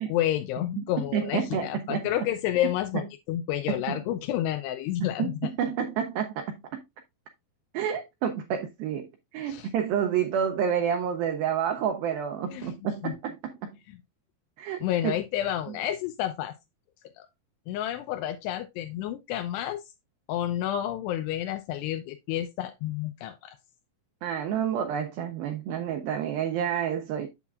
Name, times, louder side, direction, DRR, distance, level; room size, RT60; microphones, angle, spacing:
voice 1, 0.0-5.5 9.5-9.7 12.5-12.7 13.0-13.2 14.8-16.5 17.2-17.3 17.7-19.8 20.3-23.6, left 12 dB, 85° left, 2.6 m, -30 dB
voice 2, 1.1-2.1 3.7-4.0 5.0-6.8 7.7-13.8 14.6-15.1 24.2-27.3, right 8 dB, 80° right, 2.2 m, -29 dB
8.2 x 7.1 x 2.4 m
omnidirectional pair, 4.9 m